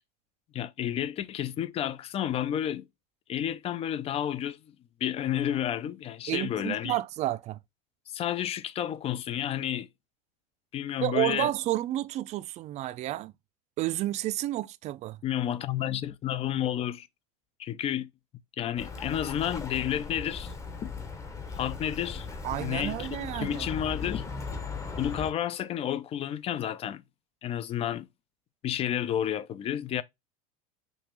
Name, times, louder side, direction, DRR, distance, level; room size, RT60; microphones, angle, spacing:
voice 1, 0.5-2.9 3.3-4.6 5.0-7.0 8.1-9.9 10.7-11.5 15.2-17.1 17.6-18.1 18.6-20.5 20.8-20.9 21.6-22.3 22.6-24.6 25.0-27.0 27.4-28.1 28.6-30.0, left 10 dB, 30° left, 0.5 m, -31 dB
voice 2, 6.3-7.6 11.0-13.3 13.8-15.2 22.4-23.7, right 15 dB, 35° right, 0.4 m, -31 dB
Bird, 18.8-25.3, left 4 dB, 15° left, 0.8 m, -38 dB
5.3 x 2.4 x 2.9 m
supercardioid pair, 105°, 19 cm